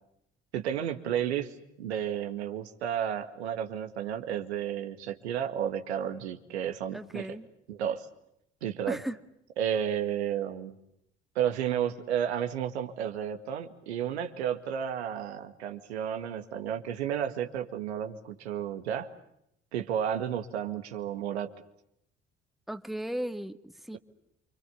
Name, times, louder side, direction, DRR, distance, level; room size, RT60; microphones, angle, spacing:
voice 1, 0.5-7.3 7.7-8.1 8.6-9.0 9.6-10.8 11.4-19.1 19.7-21.5, right 9 dB, 75° right, 6 dB, 2.1 m, -32 dB
voice 2, 6.9-7.5 8.9-9.2 22.7-24.0, right 1 dB, ahead, 8 dB, 2.0 m, -36 dB
29.0 x 26.0 x 7.2 m, 0.76 s
figure-of-eight pair, 50°, 33 cm